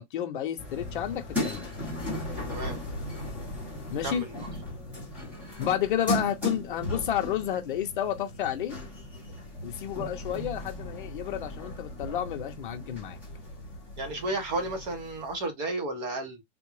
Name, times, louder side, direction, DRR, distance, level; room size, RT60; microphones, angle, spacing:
voice 1, 0.0-1.7 3.9-4.2 5.6-8.8 9.6-13.2, left 10 dB, 50° left, 0.7 m, -31 dB
sound 1, 0.6-15.4, left 1 dB, 5° right, 1.0 m, -37 dB
voice 2, 2.5-2.8 4.0-4.5 14.0-16.4, right 2 dB, 40° right, 1.3 m, -33 dB
3.7 x 2.4 x 3.1 m
supercardioid pair, 175°, 34 cm